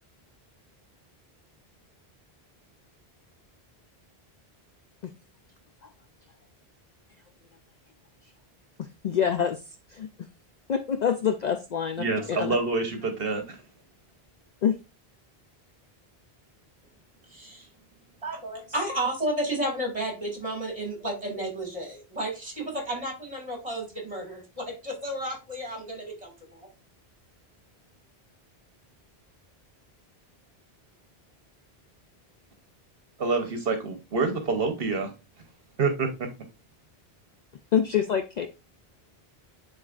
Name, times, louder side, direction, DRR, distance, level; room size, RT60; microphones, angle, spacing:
voice 1, 8.8-9.6 9.9-10.1 10.7-12.6 14.6-14.8 37.7-38.5, left 8 dB, 55° left, 8 dB, 0.5 m, -26 dB
voice 2, 12.0-13.6 33.2-35.1 35.8-36.3, right 3 dB, 65° right, 6 dB, 1.1 m, -27 dB
voice 3, 17.3-17.7 18.2-26.7, right 1 dB, 30° right, 1 dB, 2.5 m, -32 dB
10.5 x 4.0 x 2.4 m, 0.29 s
omnidirectional pair, 1.1 m